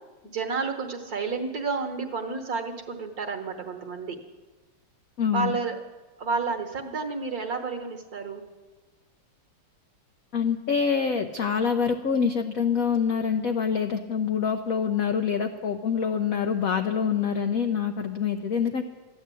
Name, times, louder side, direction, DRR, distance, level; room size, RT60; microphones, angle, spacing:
voice 1, 0.3-4.2 5.3-5.7 6.2-8.4, right 4 dB, 50° right, 5 dB, 1.4 m, -30 dB
voice 2, 5.2-5.6 10.3-18.8, left 6 dB, 75° left, 6 dB, 0.8 m, -25 dB
13.5 x 10.5 x 8.3 m, 1.2 s
omnidirectional pair, 2.4 m